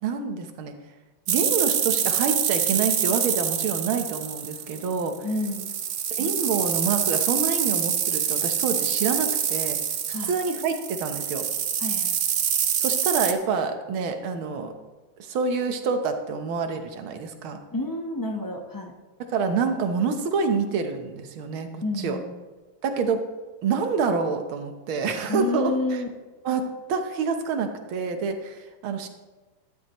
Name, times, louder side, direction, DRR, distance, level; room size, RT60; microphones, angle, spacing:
voice 1, 0.0-0.8 1.3-5.2 6.2-9.8 10.3-11.5 12.7-14.7 15.2-17.6 19.2-22.2 22.8-23.2 23.6-25.7 26.5-29.1, right 5 dB, 90° right, 6 dB, 1.8 m, -27 dB
sound 1, 1.3-13.3, right 9 dB, 65° right, 1.4 m, -26 dB
voice 2, 5.2-5.7 10.1-10.4 11.8-12.2 17.7-18.9 21.8-22.4 25.3-26.1, left 2 dB, 30° left, 2 dB, 0.3 m, -29 dB
12.5 x 12.0 x 3.0 m, 1.2 s
omnidirectional pair, 2.2 m